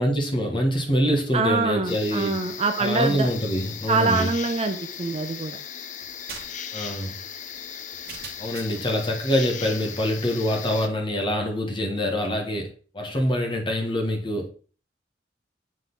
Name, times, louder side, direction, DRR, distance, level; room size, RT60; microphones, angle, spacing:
voice 1, 0.0-2.4 2.8-4.3 6.7-7.2 8.4-12.7 12.9-14.5, equal, 30° left, 1.3 m, -25 dB
voice 2, 1.3-3.3 3.9-5.6, right 3 dB, 35° right, 0.6 m, -24 dB
sound 1, 1.9-10.9, left 8 dB, 45° left, 0.5 m, -37 dB
sound 2, 6.0-8.9, right 5 dB, 60° right, 1.2 m, -43 dB
7.4 x 4.0 x 3.9 m
head